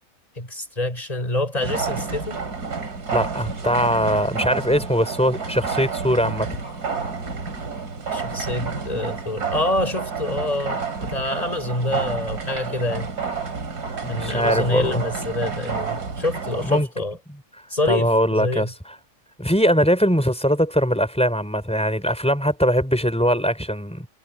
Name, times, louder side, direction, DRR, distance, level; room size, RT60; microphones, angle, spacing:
voice 1, 0.4-2.4 8.1-13.1 14.1-17.2 17.7-18.7, left 2 dB, 20° left, 5.9 m, -26 dB
sound 1, 1.5-16.8, right 5 dB, 65° right, 3.3 m, -30 dB
voice 2, 3.1-6.5 14.0-15.0 16.6-16.9 17.9-18.7 19.4-24.1, equal, 5° left, 3.7 m, -21 dB
omnidirectional pair, 1.8 m